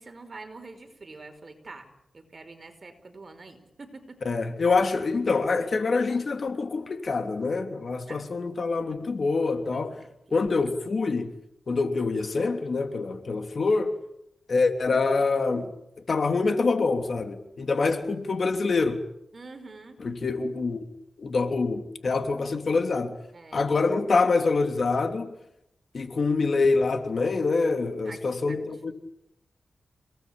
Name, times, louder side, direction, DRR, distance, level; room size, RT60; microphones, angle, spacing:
voice 1, 0.0-1.9 2.1-4.4 8.1-8.3 9.7-10.4 19.3-20.0 22.4-22.6 23.3-23.7 28.0-28.2 28.5-28.6, right 3 dB, 45° right, 5.1 m, -45 dB
voice 2, 4.2-10.0 10.3-11.3 11.7-13.9 14.5-15.7 16.1-19.0 20.0-20.9 21.2-23.2 23.5-25.3 25.9-28.9, left 4 dB, 60° left, 3.1 m, -25 dB
29.5 x 18.5 x 8.9 m
cardioid pair, 75°, 0 cm